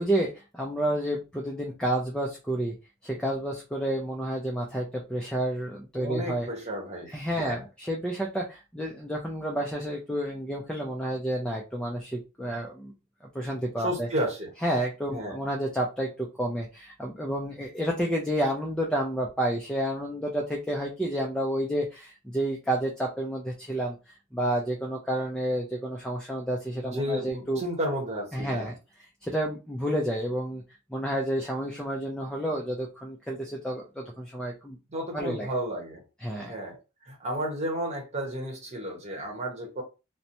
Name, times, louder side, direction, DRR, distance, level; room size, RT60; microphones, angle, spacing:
voice 1, 0.0-2.8 3.0-6.5 7.1-12.9 13.3-14.1 14.6-24.0 24.3-27.6 28.3-28.7 29.2-30.6 30.9-34.8 35.1-35.5 36.2-36.5, right 1 dB, 5° left, 0.4 m, -30 dB
voice 2, 5.9-7.6 13.8-14.5 15.1-15.4 26.8-28.7 34.9-36.0 36.5-36.8 37.0-39.8, equal, 35° right, 1.0 m, -32 dB
2.9 x 2.1 x 2.6 m
head